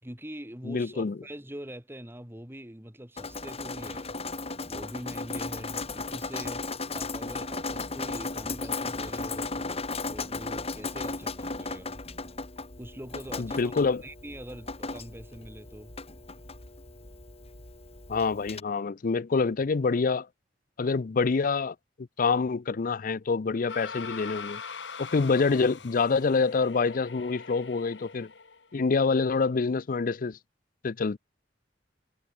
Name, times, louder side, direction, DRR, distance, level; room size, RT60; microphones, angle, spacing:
voice 1, 0.0-4.1 4.7-6.6 6.9-12.0 12.8-15.9, equal, 15° right, 4.6 m, -43 dB
voice 2, 0.7-1.2 13.4-14.0 18.1-20.3 20.8-21.7 22.2-24.6 25.0-28.3 28.7-30.4 30.8-31.2, left 4 dB, 50° left, 0.5 m, -26 dB
Drip, 3.2-18.6, left 3 dB, 35° left, 3.4 m, -36 dB
sound 1, 23.7-28.7, left 5 dB, 75° left, 2.1 m, -42 dB
head